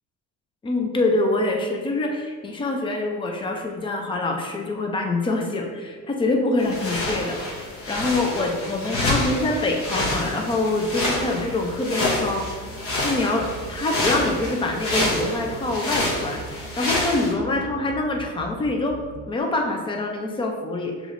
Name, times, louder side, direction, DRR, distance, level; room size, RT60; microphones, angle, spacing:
voice 1, 0.6-19.0 19.3-21.1, left 2 dB, 15° left, 2 dB, 0.4 m, -25 dB
sound 1, 6.6-17.3, left 2 dB, 45° left, 0.9 m, -28 dB
sound 2, 11.4-19.4, right 3 dB, 85° right, 0.5 m, -41 dB
6.7 x 3.1 x 2.5 m, 1.5 s
cardioid pair, 150°, 32 cm